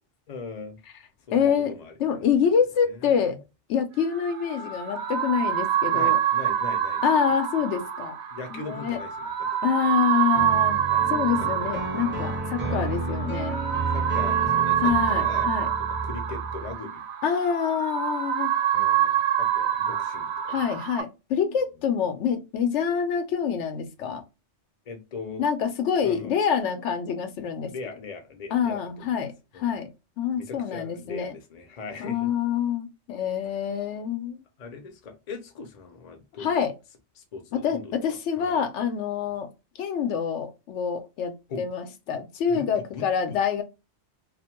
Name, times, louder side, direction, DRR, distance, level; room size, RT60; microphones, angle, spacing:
voice 1, 0.3-0.8 1.3-2.3 2.8-3.4 5.9-7.1 8.3-9.5 10.9-11.7 12.0-12.5 13.9-15.5 15.9-17.0 18.7-20.6 24.9-25.4 26.0-26.3 27.6-29.3 29.5-29.7 30.3-32.3 34.6-36.6 37.2-37.9 38.4-38.6 41.5-41.6 42.5-43.4, left 4 dB, 45° left, 0.6 m, -40 dB
voice 2, 1.3-1.7 2.0-3.4 3.7-6.2 7.0-8.2 8.5-9.0 9.6-10.8 11.1-13.6 14.8-15.7 17.2-18.5 20.5-24.2 25.4-27.7 28.5-29.9 30.2-31.3 32.0-34.4 36.4-36.7 37.5-39.5 39.8-43.6, left 7 dB, 85° left, 0.9 m, -26 dB
sound 1, 4.0-21.0, right 10 dB, 70° right, 0.8 m, -26 dB
sound 2, 10.3-16.7, right 2 dB, 15° right, 0.5 m, -32 dB
2.4 x 2.1 x 2.8 m
omnidirectional pair, 1.2 m